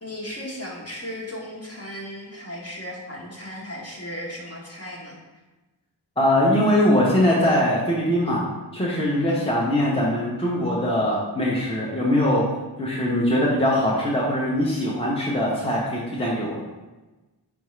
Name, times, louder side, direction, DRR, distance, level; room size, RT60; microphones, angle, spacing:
voice 1, 0.0-5.2 9.3-9.6, equal, 35° left, -3 dB, 1.0 m, -36 dB
voice 2, 6.2-8.4 8.7-12.5 12.8-16.6, left 1 dB, 15° left, -5 dB, 0.7 m, -21 dB
4.8 x 3.4 x 3.1 m, 1.1 s
wide cardioid pair, 95°, 41 cm